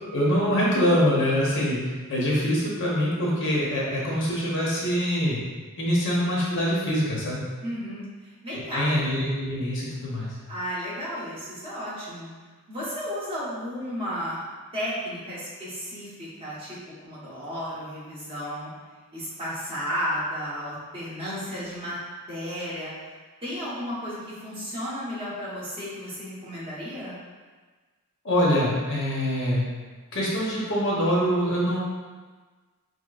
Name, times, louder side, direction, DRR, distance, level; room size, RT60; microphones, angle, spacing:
voice 1, 0.0-5.4 5.8-7.4 8.5-10.3 28.2-29.7 30.1-31.8, equal, 60° left, -5 dB, 1.0 m, -24 dB
voice 2, 7.6-8.9 10.5-12.3 12.7-14.4 14.7-16.8 17.0-18.7 19.1-22.0 22.3-22.9 23.4-27.2, equal, 25° right, -9 dB, 1.2 m, -33 dB
6.5 x 2.2 x 2.4 m, 1.4 s
head